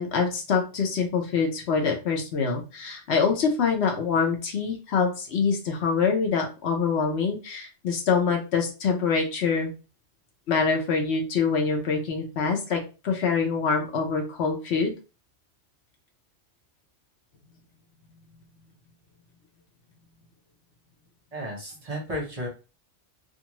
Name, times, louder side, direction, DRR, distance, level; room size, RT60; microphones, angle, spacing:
voice 1, 0.0-9.7 10.5-14.9, left 5 dB, 65° left, 2 dB, 1.0 m, -25 dB
voice 2, 21.3-22.5, equal, 35° right, -1 dB, 1.0 m, -33 dB
2.5 x 2.4 x 2.9 m, 0.31 s
omnidirectional pair, 1.2 m